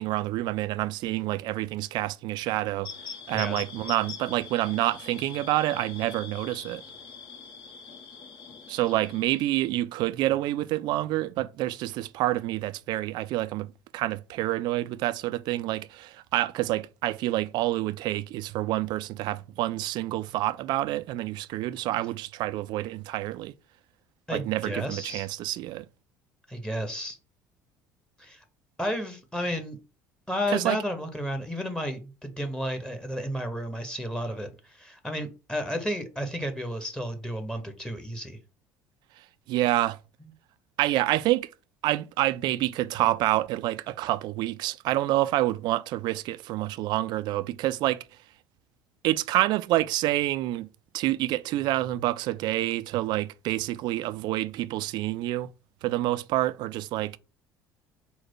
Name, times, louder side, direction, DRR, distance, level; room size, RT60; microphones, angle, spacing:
voice 1, 0.0-2.9 3.3-6.8 8.7-23.5 24.3-25.9 30.5-30.8 39.5-40.0 40.8-41.5 41.8-48.0 49.0-50.7 50.9-55.5 55.8-57.2, right 16 dB, 50° right, 0.3 m, -28 dB
sound 1, 2.8-9.7, left 6 dB, 55° left, 1.3 m, -43 dB
voice 2, 24.3-25.3 26.5-27.2 28.2-28.4 28.8-29.8 30.3-38.4 40.2-40.3, equal, 5° left, 0.9 m, -32 dB
4.0 x 2.1 x 4.5 m
figure-of-eight pair, 60°, 9 cm